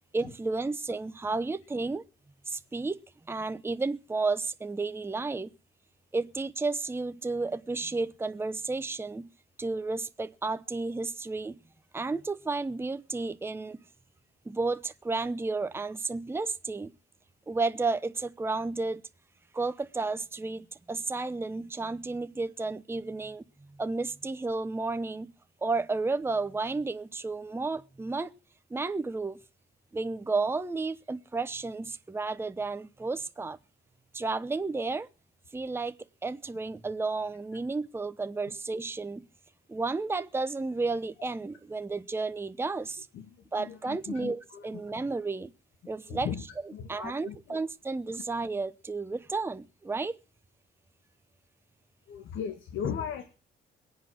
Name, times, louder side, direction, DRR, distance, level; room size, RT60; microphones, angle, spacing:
voice 1, 0.1-2.0 2.5-3.0 3.3-5.5 6.1-9.3 9.6-11.6 11.9-13.8 14.5-16.9 17.5-19.0 19.5-23.4 23.7-25.3 25.6-28.3 28.7-29.4 29.9-33.6 34.1-35.1 35.5-35.9 36.2-39.2 39.7-43.1 43.5-45.5 45.9-46.3 46.9-50.2, right 3 dB, 10° right, 0.7 m, -32 dB
voice 2, 43.1-45.0 46.1-46.4 46.7-47.6 52.1-53.2, left 8 dB, 80° left, 1.7 m, -38 dB
22.0 x 8.2 x 6.3 m
cardioid pair, 90°, 20 cm